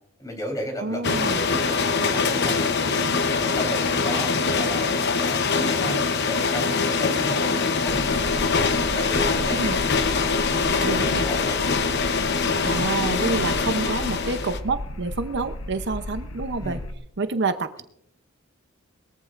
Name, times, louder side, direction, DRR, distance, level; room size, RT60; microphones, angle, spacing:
voice 1, 0.2-3.0 3.3-4.9 5.1-11.6 16.6-16.8, left 1 dB, 15° left, 2 dB, 3.6 m, -35 dB
voice 2, 0.8-1.5 9.5-9.8 10.8-11.3 12.6-16.8 17.2-17.8, right 3 dB, 55° right, 9 dB, 0.7 m, -28 dB
sound 1, 1.0-14.6, left 4 dB, 55° left, 0.9 m, -23 dB
sound 2, 7.9-16.9, left 1 dB, 80° left, 1.0 m, -35 dB
21.5 x 14.5 x 2.6 m, 0.74 s
head